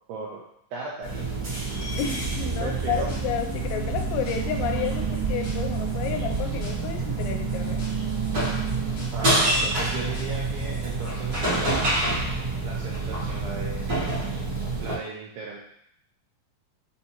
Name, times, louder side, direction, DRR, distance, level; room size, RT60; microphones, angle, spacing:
voice 1, 0.1-0.4 0.7-1.3 2.6-3.1 9.1-12.0 12.6-13.8 14.8-15.6, right 4 dB, 85° right, -4 dB, 2.3 m, -36 dB
sound 1, 1.0-14.9, right 2 dB, 50° right, 1.4 m, -28 dB
sound 2, 1.1-9.0, right 11 dB, 70° right, 2.5 m, -35 dB
voice 2, 2.0-7.8, left 8 dB, 90° left, 5 dB, 2.9 m, -31 dB
sound 3, 2.5-4.6 4.8-6.9 7.2-9.3 9.5-11.9, left 3 dB, 70° left, 1.7 m, -41 dB
6.8 x 2.6 x 2.8 m, 0.71 s
omnidirectional pair, 5.2 m